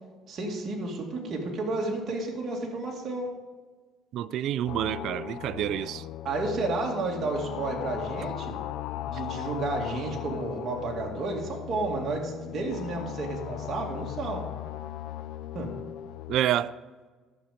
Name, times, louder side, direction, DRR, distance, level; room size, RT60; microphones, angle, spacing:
voice 1, 0.3-3.3 6.2-8.6 9.1-14.4 15.5-15.7, right 2 dB, 45° right, 2.3 m, -31 dB
voice 2, 4.1-6.0 16.3-16.8, right 12 dB, 65° right, 0.4 m, -28 dB
sound 1, 4.7-16.4, left 12 dB, 80° left, 0.4 m, -37 dB
12.0 x 7.0 x 5.1 m
cardioid pair, 120°, 0 cm